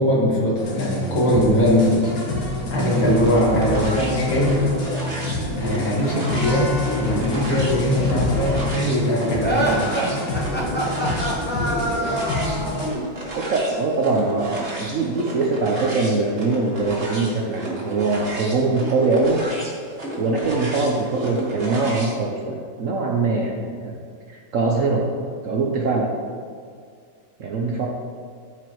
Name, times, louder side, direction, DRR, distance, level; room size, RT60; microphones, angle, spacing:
voice 1, 0.0-2.0 2.7-4.7 5.6-9.8, equal, 90° left, -6 dB, 2.8 m, -20 dB
sound 1, 0.6-12.9, left 2 dB, 70° left, 1.9 m, -27 dB
sound 2, 3.2-22.2, right 1 dB, 35° right, 1.8 m, -32 dB
sound 3, 9.4-12.9, right 1 dB, 10° left, 0.4 m, -25 dB
voice 2, 13.4-19.4 20.2-23.9 24.3-25.0 25.4-26.1 27.4-27.9, right 3 dB, 60° right, 0 dB, 0.8 m, -22 dB
13.0 x 5.1 x 3.1 m, 2.1 s
omnidirectional pair, 2.1 m